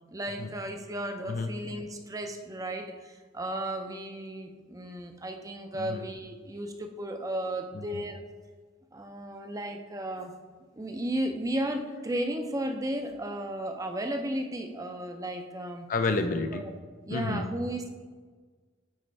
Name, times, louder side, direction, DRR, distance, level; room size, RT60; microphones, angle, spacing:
voice 1, 0.1-8.2 8.9-10.3 10.7-15.9 16.5-16.7 17.1-17.9, right 1 dB, 20° right, 5 dB, 0.5 m, -34 dB
voice 2, 15.9-16.6 17.1-17.4, left 3 dB, 45° left, 6 dB, 0.5 m, -29 dB
9.0 x 4.4 x 3.3 m, 1.5 s
head